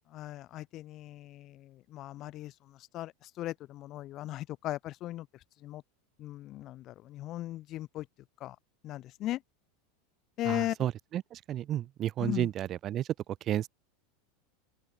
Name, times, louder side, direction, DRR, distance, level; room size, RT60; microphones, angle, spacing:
voice 1, 0.1-2.5 2.9-5.3 5.6-5.8 6.2-8.0 8.4-8.6 8.8-9.4 10.4-10.8 12.2-12.5, left 15 dB, 45° left, 2.7 m, -37 dB
voice 2, 10.4-13.1 13.5-13.7, right 12 dB, 40° right, 3.0 m, -32 dB
open air
hypercardioid pair, 90°, 0 cm